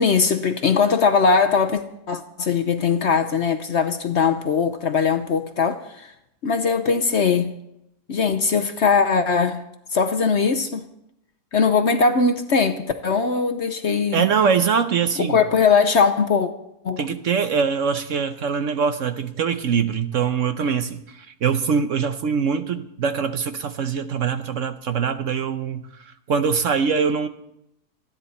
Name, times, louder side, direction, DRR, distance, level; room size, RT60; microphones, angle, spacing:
voice 1, 0.0-6.1 6.4-7.5 8.1-9.6 9.9-10.9 11.5-14.2 15.2-16.5 16.8-17.0, left 5 dB, 55° left, 0.9 m, -20 dB
voice 2, 14.1-15.4 17.0-25.9 26.3-27.3, right 6 dB, 60° right, 1.0 m, -23 dB
28.5 x 10.0 x 4.2 m
omnidirectional pair, 1.7 m